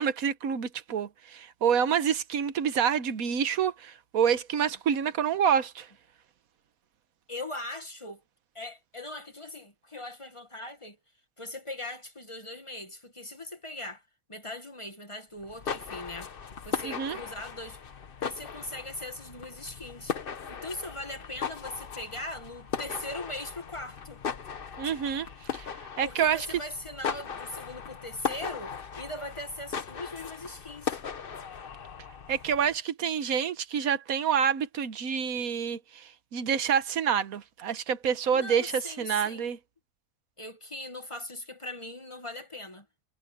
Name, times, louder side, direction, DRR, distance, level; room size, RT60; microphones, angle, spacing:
voice 1, 0.0-5.9 16.8-17.2 24.8-25.3 25.5-26.5 32.3-39.6, right 8 dB, 85° right, 1.5 m, -27 dB
voice 2, 7.3-8.2 8.5-11.0 11.4-14.0 14.3-16.3 16.6-17.8 18.2-20.1 20.5-24.2 26.0-31.0 38.3-39.5 40.4-42.8, left 1 dB, 25° left, 1.3 m, -40 dB
sound 1, 15.4-32.7, left 6 dB, 45° left, 1.1 m, -38 dB
omnidirectional pair, 1.4 m